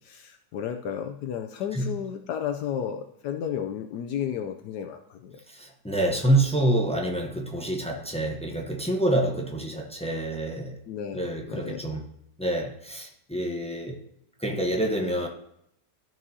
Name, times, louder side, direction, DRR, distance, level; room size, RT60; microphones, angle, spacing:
voice 1, 0.0-5.4 5.9-6.1 10.9-11.2 11.5-11.8, left 8 dB, 75° left, 6 dB, 1.1 m, -33 dB
voice 2, 5.5-10.8 11.1-12.0 12.4-14.0 14.4-15.3, right 1 dB, 5° left, 0 dB, 0.4 m, -27 dB
13.5 x 6.1 x 2.8 m, 0.75 s
omnidirectional pair, 1.9 m